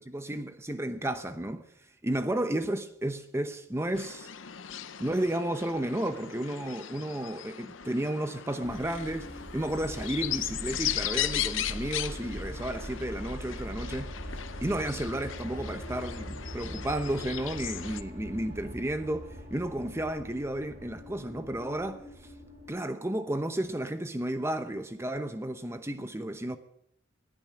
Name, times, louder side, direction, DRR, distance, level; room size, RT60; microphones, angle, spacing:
voice 1, 0.0-1.7 2.0-4.3 5.0-14.1 14.6-22.0 22.7-26.6, right 1 dB, 15° right, 0.8 m, -32 dB
sound 1, 4.0-18.0, left 11 dB, 85° left, 0.8 m, -37 dB
sound 2, 8.6-22.7, equal, 35° right, 5.0 m, -42 dB
19.5 x 10.5 x 6.0 m
head